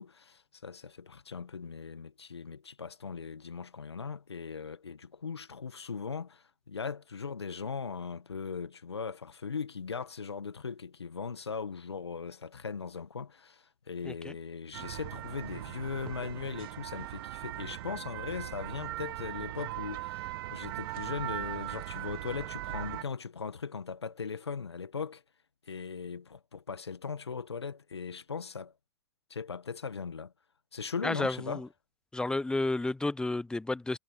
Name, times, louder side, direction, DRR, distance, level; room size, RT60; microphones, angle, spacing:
voice 1, 0.0-25.2 25.7-28.7 29.3-30.3 30.7-31.6, left 5 dB, 85° left, 1.6 m, -39 dB
voice 2, 14.0-14.3 31.0-31.7 32.1-34.0, left 2 dB, 5° left, 0.5 m, -31 dB
sound 1, 14.7-23.0, right 16 dB, 60° right, 1.3 m, -39 dB
figure-of-eight pair, 90°, 13 cm